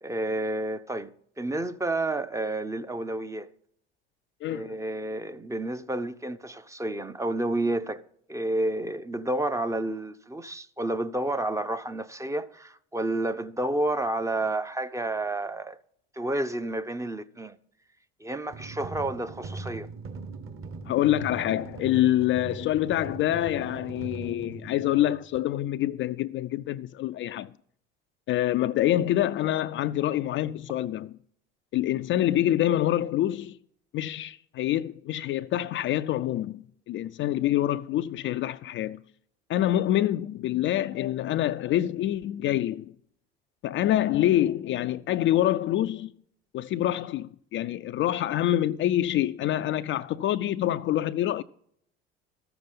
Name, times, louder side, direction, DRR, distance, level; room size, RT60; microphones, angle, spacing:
voice 1, 0.0-1.1 1.4-3.5 4.5-8.0 8.3-15.8 16.2-17.6 18.2-19.9, right 1 dB, 10° right, 0.6 m, -30 dB
voice 2, 4.4-4.8 20.9-27.5 28.3-31.2 31.7-33.6 33.9-39.0 39.5-42.9 43.6-46.1 46.5-51.4, left 13 dB, 40° left, 0.4 m, -26 dB
sound 1, 18.5-25.4, right 4 dB, 40° right, 1.4 m, -40 dB
13.5 x 6.9 x 5.3 m
hypercardioid pair, 70°, 32 cm